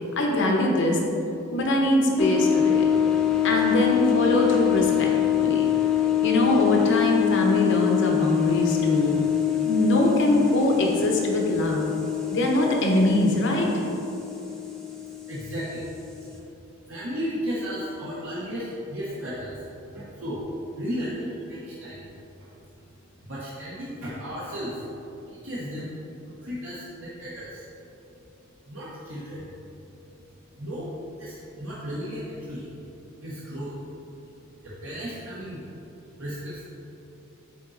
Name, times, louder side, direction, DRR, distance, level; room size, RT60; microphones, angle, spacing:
voice 1, 0.2-1.0 1.5-2.8 3.4-5.1 5.4-5.7 6.2-9.1 9.6-11.9 12.3-13.7, left 1 dB, 60° left, 0 dB, 0.9 m, -22 dB
sound 1, 2.2-16.4, left 11 dB, ahead, 0.6 m, -25 dB
voice 2, 15.3-15.9 16.3-16.4 16.9-19.7 19.9-20.4 20.8-22.1 22.4-22.5 23.2-24.9 25.3-25.9 26.2-27.6 28.7-29.5 30.6-30.9 31.2-32.7 33.2-33.8 34.6-35.7 36.2-36.6, equal, 65° right, -8 dB, 1.0 m, -34 dB
7.8 x 4.0 x 3.9 m, 3.0 s
head